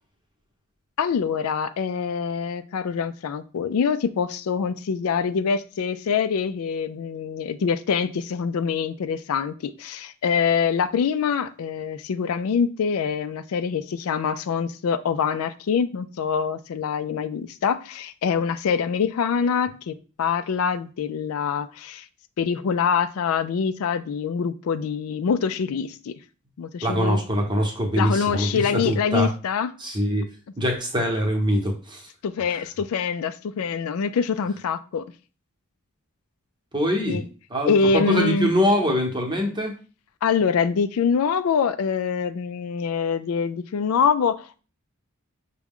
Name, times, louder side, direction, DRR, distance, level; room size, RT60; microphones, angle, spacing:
voice 1, 1.0-22.1 22.4-26.1 26.6-27.2 27.9-29.7 32.2-35.1 37.1-37.2 37.7-38.5 40.2-44.6, left 6 dB, 75° left, 0.3 m, -25 dB
voice 2, 26.8-29.3 29.8-30.3 30.6-32.0 36.7-37.2 37.5-39.8, equal, 20° right, 0.9 m, -23 dB
6.0 x 2.2 x 3.6 m
head